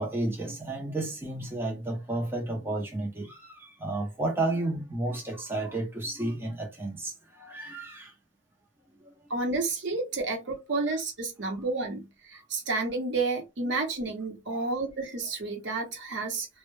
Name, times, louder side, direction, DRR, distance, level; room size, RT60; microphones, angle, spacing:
voice 1, 0.0-8.1 14.5-14.6, right 2 dB, 10° right, 0.4 m, -32 dB
voice 2, 9.3-16.5, right 3 dB, 60° right, 0.7 m, -31 dB
2.1 x 2.0 x 3.0 m
head